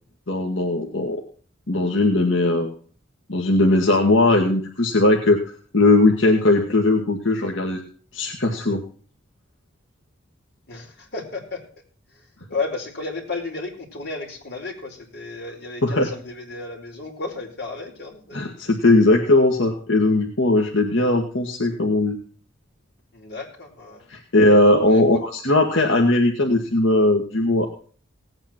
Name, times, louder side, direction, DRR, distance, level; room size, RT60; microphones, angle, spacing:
voice 1, 0.3-1.2 1.7-2.7 3.3-5.4 5.7-7.8 8.1-8.8 15.8-16.1 18.3-22.2 24.1-27.7, left 2 dB, 80° left, 1 dB, 1.9 m, -18 dB
voice 2, 10.7-11.6 12.5-18.5 23.1-24.0 24.9-25.0, left 3 dB, 55° left, -1 dB, 4.6 m, -33 dB
18.0 x 9.0 x 4.5 m, 0.43 s
head